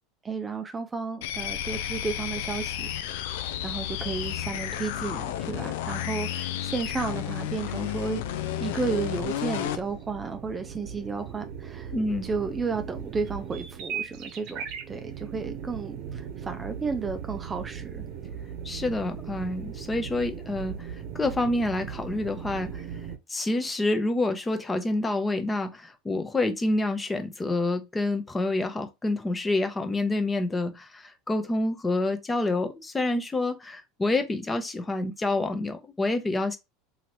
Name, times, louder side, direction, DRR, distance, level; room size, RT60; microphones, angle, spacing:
voice 1, 0.2-2.9 3.6-8.2 8.6-11.9 12.2-18.0, right 4 dB, 20° right, 0.4 m, -33 dB
sound 1, 1.2-9.8, left 11 dB, 75° left, 0.4 m, -32 dB
sound 2, 8.2-23.2, right 8 dB, 60° right, 0.8 m, -38 dB
voice 2, 11.9-12.3 18.6-20.7 21.1-22.8 23.3-36.6, left 2 dB, 15° left, 0.7 m, -27 dB
2.8 x 2.7 x 3.0 m
hypercardioid pair, 95°, 0 cm